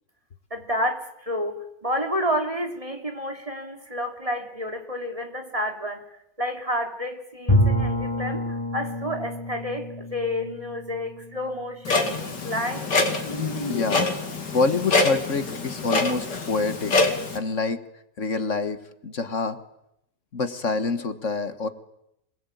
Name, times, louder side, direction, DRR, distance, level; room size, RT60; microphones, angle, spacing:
voice 1, 0.5-1.5 1.8-6.0 6.4-8.4 8.7-13.0, equal, 20° right, 4 dB, 3.2 m, -30 dB
Bowed string instrument, 7.5-12.3, equal, 15° left, 4.2 m, -27 dB
Clock, 11.8-17.4, left 3 dB, 80° left, 3.4 m, -25 dB
voice 2, 13.7-14.1 14.5-16.9 17.3-17.8 18.2-19.6 20.3-21.7, left 3 dB, 45° left, 10 dB, 1.7 m, -26 dB
27.0 x 21.0 x 9.3 m, 0.82 s
omnidirectional pair, 1.9 m